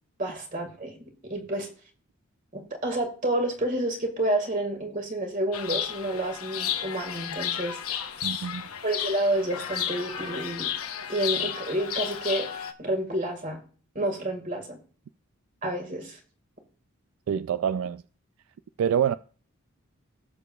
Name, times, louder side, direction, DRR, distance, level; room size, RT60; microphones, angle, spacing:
voice 1, 0.2-1.0 1.2-1.7 2.5-7.8 8.8-10.7 11.1-12.5 12.8-13.6 14.0-14.8 15.6-16.2, right 1 dB, 35° right, 1.9 m, -29 dB
Chirp tweet, 5.5-12.7, left 9 dB, 85° left, 1.0 m, -33 dB
voice 2, 8.2-8.7 17.3-18.0 18.8-19.1, right 8 dB, 70° right, 0.3 m, -26 dB
17.5 x 7.0 x 2.3 m
head